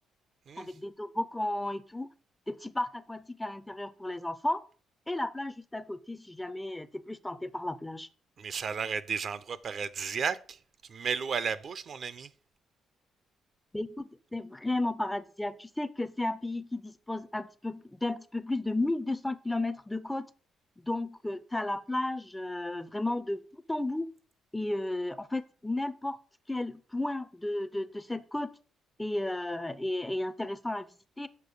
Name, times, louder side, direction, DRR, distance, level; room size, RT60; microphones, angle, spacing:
voice 1, 0.6-2.1 2.5-4.6 5.1-8.1 13.7-20.3 20.8-24.1 24.5-26.2 26.5-28.5 29.0-30.8 31.2-31.3, left 2 dB, 10° left, 0.4 m, -33 dB
voice 2, 8.4-10.6 10.9-12.3, right 6 dB, 55° right, 0.5 m, -33 dB
6.7 x 4.4 x 5.3 m
cardioid pair, 90°, 0 cm